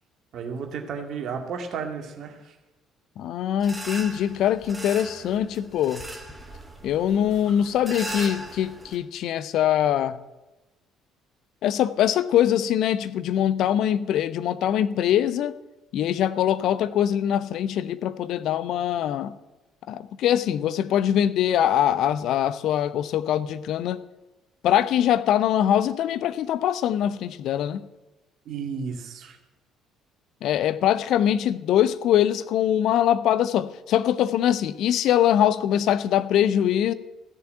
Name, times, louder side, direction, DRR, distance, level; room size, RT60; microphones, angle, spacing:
voice 1, 0.3-2.5 28.5-29.4, right 6 dB, 55° right, 2.0 m, -33 dB
voice 2, 3.2-6.0 6.8-10.2 11.6-15.6 15.9-19.4 19.9-24.0 24.6-27.8 30.4-36.9, left 10 dB, 60° left, 0.5 m, -23 dB
sound 1, 3.6-9.0, right 1 dB, 10° right, 2.6 m, -38 dB
15.0 x 6.8 x 8.8 m
figure-of-eight pair, 50°, 0 cm